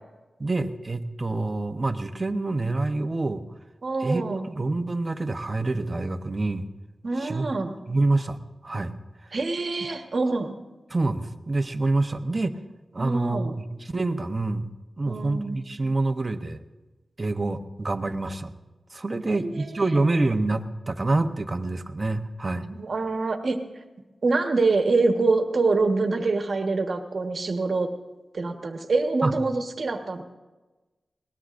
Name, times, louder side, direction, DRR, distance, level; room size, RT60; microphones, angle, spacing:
voice 1, 0.4-3.4 4.0-6.6 7.2-7.5 7.9-8.4 8.6-8.9 10.9-12.6 12.9-14.7 15.0-16.6 17.2-18.5 18.9-22.7 29.2-29.3, right 2 dB, 30° right, 8 dB, 0.9 m, -26 dB
voice 2, 3.8-4.5 7.0-7.8 9.3-10.5 13.0-13.5 15.1-15.6 19.3-19.8 22.7-23.6 24.2-27.9 28.3-30.2, right 3 dB, 55° right, 5 dB, 1.4 m, -25 dB
21.5 x 19.0 x 2.6 m, 1.2 s
wide cardioid pair, 85°, 0 cm